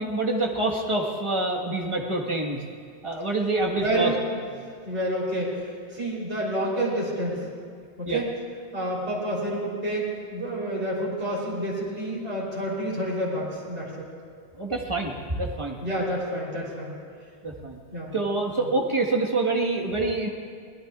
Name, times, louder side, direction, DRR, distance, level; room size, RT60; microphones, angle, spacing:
voice 1, 0.0-2.6 3.0-4.1 8.1-8.2 14.6-15.8 17.4-17.8 18.1-20.3, right 2 dB, 25° right, 0 dB, 1.5 m, -26 dB
voice 2, 3.8-4.4 4.8-7.5 8.0-8.4 8.7-14.1 15.8-17.0 17.9-18.1 18.6-18.7, right 1 dB, 85° right, -6 dB, 3.9 m, -29 dB
23.5 x 18.5 x 2.5 m, 2.2 s
omnidirectional pair, 1.1 m